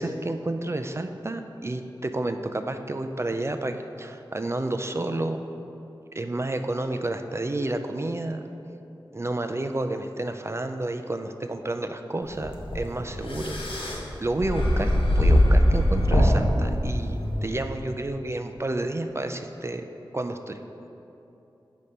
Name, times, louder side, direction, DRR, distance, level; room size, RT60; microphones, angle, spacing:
voice 1, 0.0-5.4 6.1-8.5 9.1-19.8 20.1-20.6, right 2 dB, 30° right, 7 dB, 0.3 m, -30 dB
sound 1, 12.3-17.4, equal, 80° left, 0.9 m, -22 dB
6.7 x 5.1 x 4.2 m, 2.9 s
wide cardioid pair, 50°, 9 cm